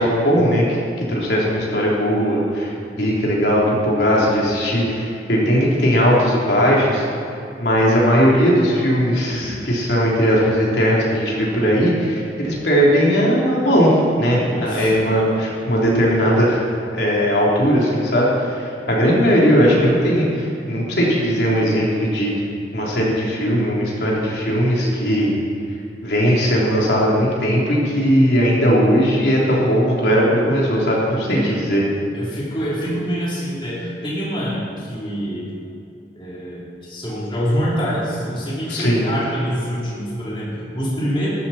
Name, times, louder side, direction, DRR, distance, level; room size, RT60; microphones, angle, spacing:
voice 1, 0.0-7.0 7.6-16.7 16.9-22.3 22.7-25.3 26.0-31.8 38.7-39.1, equal, 65° left, -5 dB, 3.6 m, -18 dB
voice 2, 14.4-15.1 31.1-31.6 32.1-35.5 36.1-41.3, equal, 30° left, -7 dB, 3.6 m, -26 dB
13.5 x 13.5 x 4.4 m, 2.5 s
head